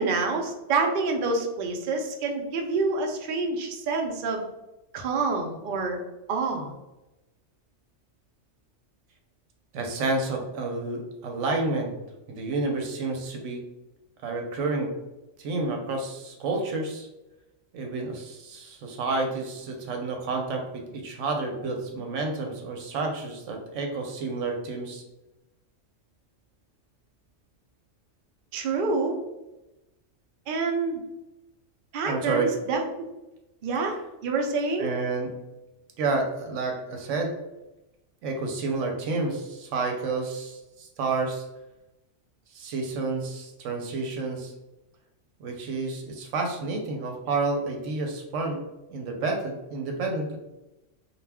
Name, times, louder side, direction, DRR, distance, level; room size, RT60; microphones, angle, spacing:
voice 1, 0.0-4.4 4.9-6.0 6.3-6.7 28.5-29.2 30.5-31.0 31.9-32.8 33.6-34.0 34.2-34.9, right 3 dB, 60° right, 2 dB, 0.6 m, -27 dB
voice 2, 9.7-11.9 12.3-13.6 14.2-14.9 15.4-17.1 17.7-25.0 32.1-32.5 34.8-35.3 36.0-37.3 38.2-41.4 42.5-44.5 45.4-48.6 48.9-50.4, right 3 dB, 85° right, 2 dB, 0.9 m, -30 dB
2.3 x 2.2 x 3.3 m, 0.97 s
omnidirectional pair, 1.2 m